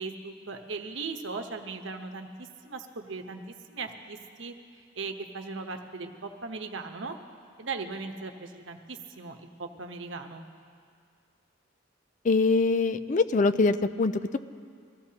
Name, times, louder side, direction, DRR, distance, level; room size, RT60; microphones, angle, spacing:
voice 1, 0.0-4.5 5.0-7.2 7.6-10.4, right 4 dB, 85° right, 4 dB, 1.0 m, -38 dB
voice 2, 12.2-14.4, left 3 dB, 40° left, 12 dB, 0.4 m, -24 dB
23.0 x 14.5 x 2.9 m, 2.3 s
head